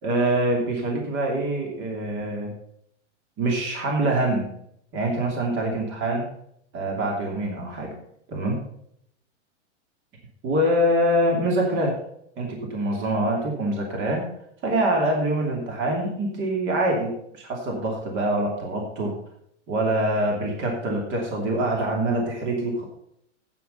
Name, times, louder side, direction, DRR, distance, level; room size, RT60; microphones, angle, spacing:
voice 1, 0.0-2.5 3.4-4.5 4.9-6.2 6.7-7.9 8.3-8.6 10.4-12.0 12.4-14.3 14.6-19.2 19.7-22.8, right 1 dB, 35° right, 0 dB, 2.9 m, -25 dB
9.7 x 9.3 x 5.5 m, 0.71 s
hypercardioid pair, 140°, 36 cm